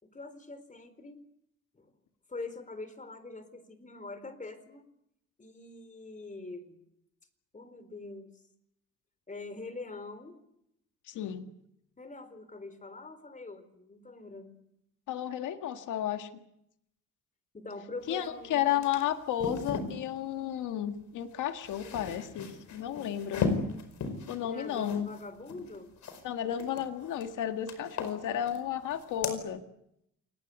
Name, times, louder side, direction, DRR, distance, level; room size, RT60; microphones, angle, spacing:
voice 1, 0.0-1.2 1.7-1.9 2.3-4.8 5.4-6.8 7.5-8.4 9.3-10.4 12.0-14.6 17.5-18.9 24.4-25.9, left 3 dB, 25° left, 12 dB, 4.0 m, -44 dB
voice 2, 11.1-11.5 15.1-16.3 18.1-23.5 24.3-25.1 26.2-29.6, left 10 dB, 85° left, 7 dB, 1.9 m, -33 dB
sound 1, 18.2-18.3 18.6-20.0 21.3-26.2 26.6-27.3 27.7-28.6 28.9-29.4, left 4 dB, 70° left, 4.8 m, -36 dB
28.5 x 19.5 x 8.3 m, 0.78 s
cardioid pair, 90°, 30 cm